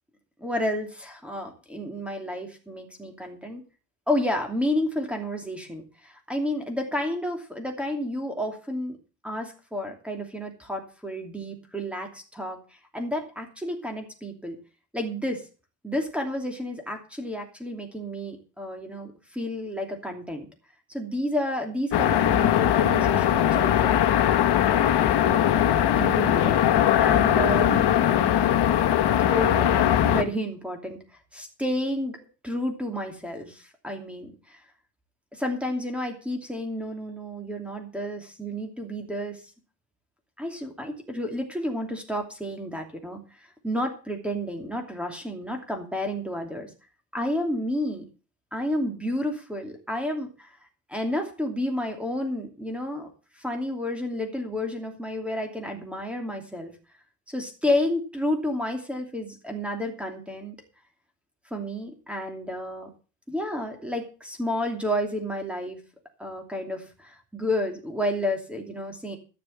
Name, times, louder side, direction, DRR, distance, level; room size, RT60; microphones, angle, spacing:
voice 1, 0.4-3.6 4.1-9.0 9.2-12.6 12.9-14.6 14.9-15.5 15.8-20.5 20.9-23.9 24.7-25.3 25.6-27.9 29.2-31.0 31.3-32.2 32.4-34.6 35.3-39.4 40.4-46.7 47.1-48.1 48.5-50.5 50.9-53.1 53.3-56.7 57.3-60.5 61.5-62.9 63.3-65.8 66.2-69.2, left 1 dB, 5° right, 4 dB, 2.7 m, -31 dB
sound 1, 21.9-30.2, left 11 dB, 70° left, 1.2 m, -20 dB
14.0 x 6.9 x 7.2 m, 0.35 s
cardioid pair, 145°, 42 cm